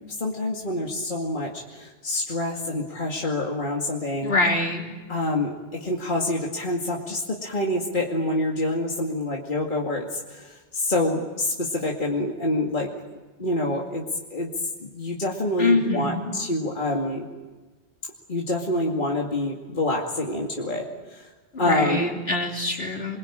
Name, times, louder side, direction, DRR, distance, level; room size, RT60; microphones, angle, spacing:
voice 1, 0.2-4.3 5.1-12.9 13.4-14.0 14.3-14.5 14.9-17.3 18.3-21.3 21.6-22.1, left 1 dB, 45° left, -2 dB, 2.6 m, -27 dB
voice 2, 4.2-4.9 15.6-16.3 21.5-23.2, left 2 dB, 65° left, 1 dB, 3.7 m, -24 dB
28.0 x 22.0 x 8.9 m, 1.3 s
omnidirectional pair, 1.1 m